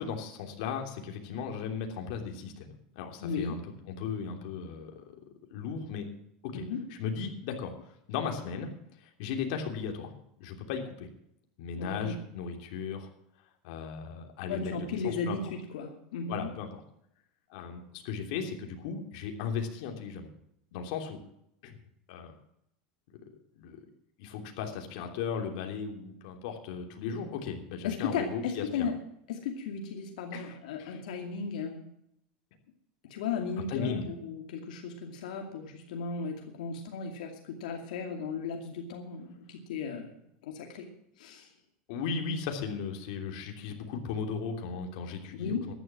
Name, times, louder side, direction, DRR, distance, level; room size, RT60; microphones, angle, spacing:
voice 1, 0.0-5.1 5.5-6.1 6.4-6.6 7.0-7.7 8.1-8.7 9.2-10.1 10.4-11.1 11.6-13.1 13.6-15.4 16.3-16.7 17.5-20.3 20.7-21.2 21.6-21.8 22.1-22.3 23.6-23.8 24.2-28.9 30.3-31.0 33.7-34.1 41.9-45.6, left 6 dB, 65° left, 3 dB, 3.0 m, -36 dB
voice 2, 3.2-3.6 6.5-6.8 11.8-12.2 14.5-16.5 27.8-28.9 29.3-31.9 33.1-40.9 41.2-41.5 45.4-45.7, left 5 dB, 90° left, 2 dB, 2.5 m, -35 dB
14.5 x 11.0 x 6.1 m, 0.76 s
supercardioid pair, 145°, 4 cm